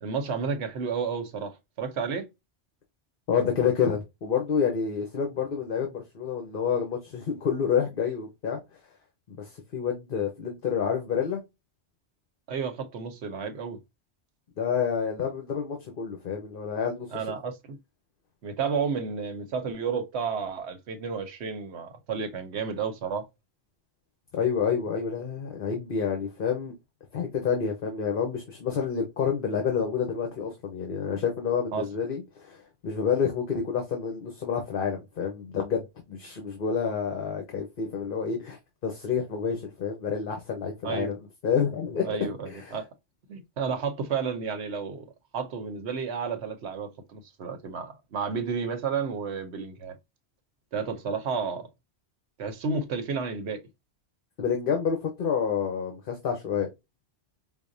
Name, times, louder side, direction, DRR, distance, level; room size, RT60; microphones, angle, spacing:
voice 1, 0.0-2.3 12.5-13.8 17.1-17.8 18.4-23.3 31.7-31.8 40.8-41.1 42.0-42.8 43.3-49.9 50.7-51.7 52.4-53.6, right 5 dB, 85° right, 1.1 m, -31 dB
voice 2, 3.3-8.6 9.3-11.4 14.6-17.1 24.3-26.7 27.1-41.2 41.4-42.8 54.4-56.7, left 7 dB, 60° left, 1.0 m, -28 dB
5.1 x 2.1 x 2.5 m
omnidirectional pair, 1.1 m